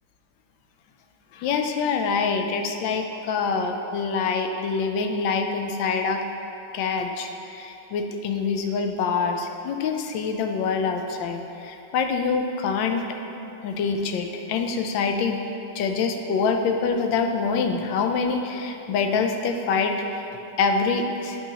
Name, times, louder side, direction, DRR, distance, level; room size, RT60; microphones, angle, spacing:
voice 1, 1.3-6.2 6.7-13.0 13.6-15.4 15.7-20.2 20.6-21.4, left 5 dB, 80° left, 5 dB, 1.3 m, -25 dB
9.4 x 5.6 x 2.8 m, 2.9 s
omnidirectional pair, 2.0 m